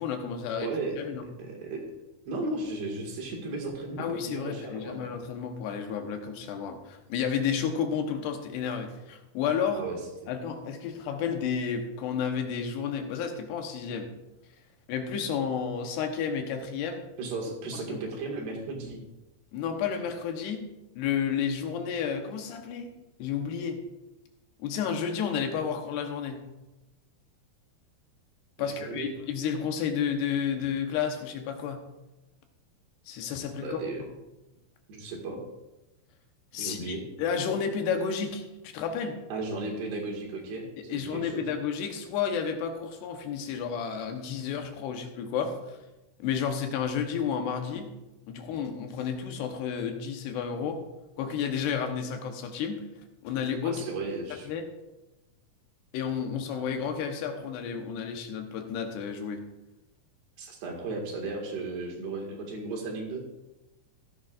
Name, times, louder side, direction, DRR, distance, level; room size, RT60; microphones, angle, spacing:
voice 1, 0.0-0.7 1.0-1.3 4.0-9.8 10.3-14.1 14.9-17.1 17.7-18.0 19.5-20.6 21.0-23.8 24.6-26.5 28.6-31.9 33.1-33.8 36.5-39.2 40.8-45.8 46.2-47.9 48.3-50.8 51.2-52.9 53.2-53.9 54.3-54.7 55.9-59.4, left 7 dB, 85° left, 5 dB, 3.2 m, -31 dB
voice 2, 0.6-1.0 1.2-1.8 2.3-5.0 9.7-10.0 10.2-10.3 17.2-19.0 28.6-29.1 33.6-34.0 34.9-35.4 36.6-37.0 39.3-41.5 53.6-54.5 60.4-63.2, right 3 dB, 85° right, -1 dB, 4.1 m, -35 dB
15.0 x 12.0 x 2.5 m, 1.0 s
omnidirectional pair, 4.6 m